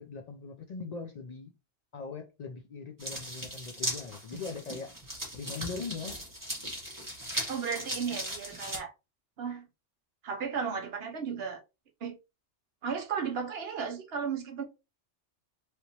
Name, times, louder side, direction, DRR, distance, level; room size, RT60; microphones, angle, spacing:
voice 1, 0.0-1.5 1.9-4.9 5.3-6.2, left 4 dB, 85° left, 0.3 m, -40 dB
sound 1, 3.0-8.8, right 1 dB, 15° right, 1.3 m, -38 dB
voice 2, 7.5-8.9 9.4-9.7 10.2-11.6 12.0-12.2 12.8-14.6, right 6 dB, 60° right, 0.8 m, -34 dB
3.2 x 2.9 x 2.8 m
omnidirectional pair, 1.3 m